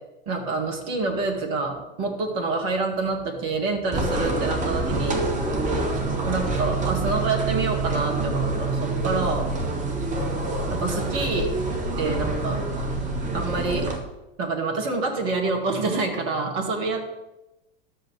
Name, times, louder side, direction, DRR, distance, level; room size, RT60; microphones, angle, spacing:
voice 1, 0.3-5.9 6.3-9.5 10.7-11.5 12.0-12.7 13.3-13.9 14.4-17.0, right 3 dB, 45° right, 2 dB, 2.1 m, -27 dB
sound 1, 3.9-14.0, right 2 dB, 25° right, 1.8 m, -26 dB
12.5 x 7.8 x 3.5 m, 0.97 s
figure-of-eight pair, 85°, 29 cm